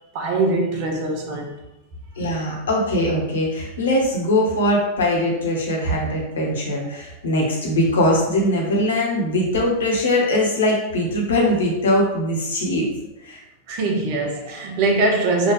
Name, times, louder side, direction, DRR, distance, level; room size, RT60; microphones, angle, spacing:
voice 1, 0.1-1.5 13.7-15.5, right 2 dB, 45° right, 0.9 m, -22 dB
voice 2, 2.2-12.9 13.2-13.4, left 1 dB, 65° left, 1.2 m, -21 dB
4.9 x 2.7 x 3.2 m
figure-of-eight pair, 90°, 0 cm